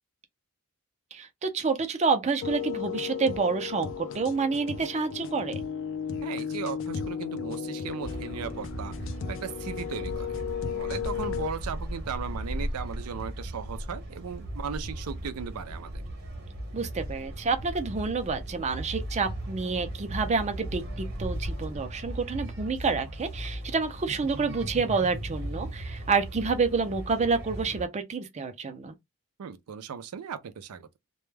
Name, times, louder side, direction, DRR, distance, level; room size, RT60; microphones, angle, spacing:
voice 1, 1.1-5.6 16.7-28.9, right 4 dB, 30° right, 0.5 m, -28 dB
sound 1, 2.4-11.5, left 7 dB, 60° left, 0.4 m, -34 dB
voice 2, 6.2-8.9 9.3-10.4 10.7-16.0 29.4-30.9, right 6 dB, 85° right, 0.4 m, -37 dB
sound 2, 8.0-27.9, right 1 dB, 50° right, 0.9 m, -37 dB
2.2 x 2.1 x 3.2 m
head